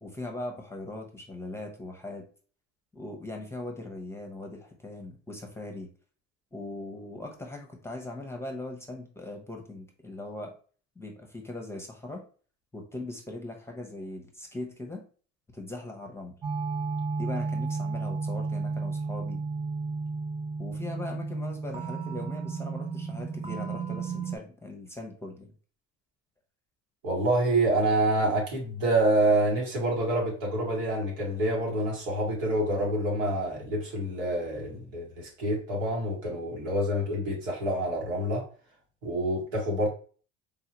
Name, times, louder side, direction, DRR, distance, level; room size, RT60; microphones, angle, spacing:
voice 1, 0.0-2.2 2.9-5.9 6.5-10.5 11.0-12.2 12.7-15.0 15.5-16.3 17.2-19.4 20.6-25.5, left 2 dB, 10° left, 0.8 m, -40 dB
sound 1, 16.4-24.4, right 4 dB, 15° right, 0.4 m, -33 dB
voice 2, 27.0-38.4 39.0-39.9, right 1 dB, 85° right, 1.6 m, -27 dB
3.7 x 2.4 x 2.9 m
supercardioid pair, 90°, 34 cm